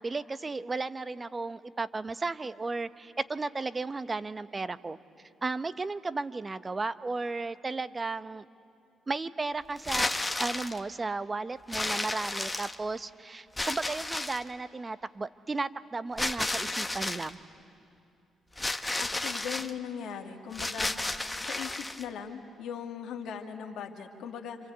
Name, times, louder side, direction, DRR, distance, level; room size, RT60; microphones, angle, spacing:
voice 1, 0.0-5.0 5.4-8.4 9.1-10.1 10.4-17.4, right 3 dB, 30° right, 13 dB, 1.0 m, -34 dB
sound 1, 9.8-10.8 11.7-13.0 13.6-14.5 16.2-17.3 18.6-19.7 20.5-22.0, left 2 dB, 15° left, 1.3 m, -32 dB
voice 2, 19.0-20.9 21.4-24.6, left 7 dB, 70° left, 3 dB, 2.2 m, -39 dB
28.0 x 26.0 x 8.2 m, 2.5 s
hypercardioid pair, 50°, 0 cm